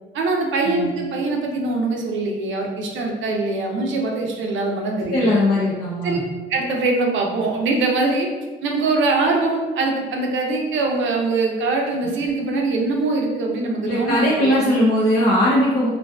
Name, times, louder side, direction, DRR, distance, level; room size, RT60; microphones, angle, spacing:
voice 1, 0.1-5.3 6.0-6.2 6.5-8.3 8.6-14.7, right 3 dB, 75° right, 1 dB, 0.5 m, -22 dB
voice 2, 5.1-6.2 13.8-15.9, left 1 dB, 45° left, -7 dB, 0.6 m, -19 dB
2.5 x 2.3 x 2.2 m, 1.3 s
cardioid pair, 90°, 20 cm